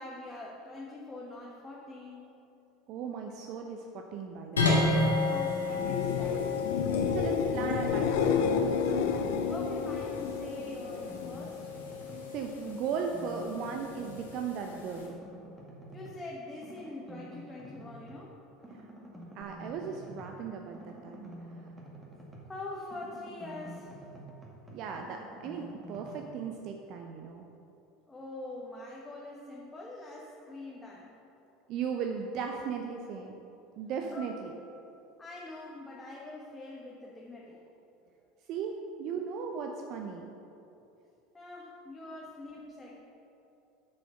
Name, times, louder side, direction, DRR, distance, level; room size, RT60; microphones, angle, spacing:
voice 1, 0.0-2.3 5.3-6.5 9.5-11.7 15.9-18.7 22.5-23.9 28.1-31.1 34.1-34.3 35.2-37.6 41.3-43.1, left 2 dB, 15° left, -4 dB, 1.3 m, -44 dB
voice 2, 2.9-4.8 7.1-9.0 12.3-15.1 18.7-18.9 19.3-21.3 24.7-27.5 31.7-33.3 33.8-34.5 38.5-40.3, right 6 dB, 50° right, 3 dB, 0.6 m, -37 dB
sound 1, 4.6-15.1, left 3 dB, 85° left, 1.6 m, -33 dB
sound 2, 5.7-11.4 11.8-12.4 19.4-19.5, left 6 dB, 60° left, 0.6 m, -31 dB
sound 3, 7.1-8.1 8.5-10.2 10.6-12.3 12.6-14.4 14.6-16.2 16.6-18.2 18.6-22.6 22.9-26.2, right 1 dB, 15° right, 2.0 m, -49 dB
8.4 x 6.5 x 5.7 m, 2.9 s
figure-of-eight pair, 75°, 0 cm